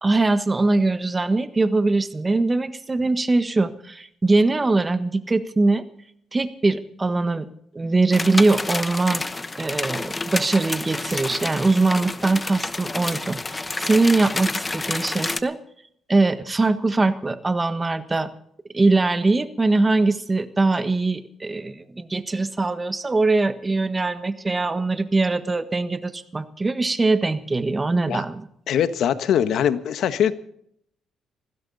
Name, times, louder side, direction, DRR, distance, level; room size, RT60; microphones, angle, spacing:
voice 1, 0.0-5.8 6.3-7.5 7.7-9.3 9.6-15.6 16.1-18.3 18.7-28.5, right 3 dB, 25° right, 11 dB, 1.4 m, -22 dB
sound 1, 8.1-15.4, left 2 dB, 20° left, 1.0 m, -29 dB
voice 2, 28.7-30.3, left 9 dB, 75° left, 11 dB, 1.3 m, -22 dB
19.5 x 16.0 x 4.1 m, 0.68 s
cardioid pair, 90°, 0 cm